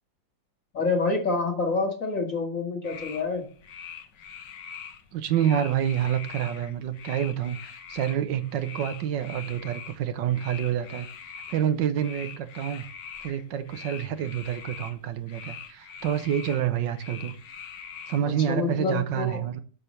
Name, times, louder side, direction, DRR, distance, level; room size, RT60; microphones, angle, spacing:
voice 1, 0.7-3.5 18.2-19.4, left 3 dB, 45° left, 2.1 m, -27 dB
sound 1, 2.8-18.2, left 7 dB, 65° left, 1.6 m, -43 dB
voice 2, 5.1-12.9 13.2-17.3 18.1-19.6, right 10 dB, 75° right, 1.4 m, -28 dB
7.9 x 6.7 x 4.2 m
omnidirectional pair, 2.1 m